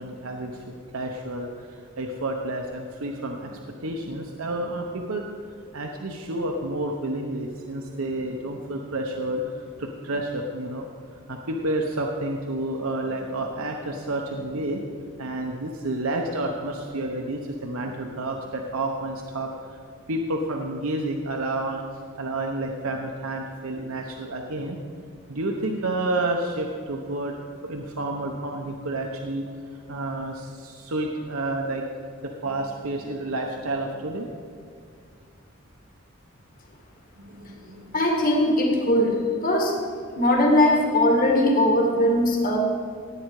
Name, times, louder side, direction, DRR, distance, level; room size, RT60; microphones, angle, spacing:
voice 1, 0.0-10.9 11.3-19.8 20.1-21.8 22.2-24.8 25.3-27.4 27.6-29.5 29.9-31.8 32.2-34.4 37.2-37.9, right 2 dB, 75° right, 2 dB, 0.9 m, -30 dB
voice 2, 37.9-39.8 40.2-42.6, left 1 dB, 40° left, 1 dB, 1.9 m, -20 dB
17.0 x 8.7 x 4.8 m, 2.3 s
head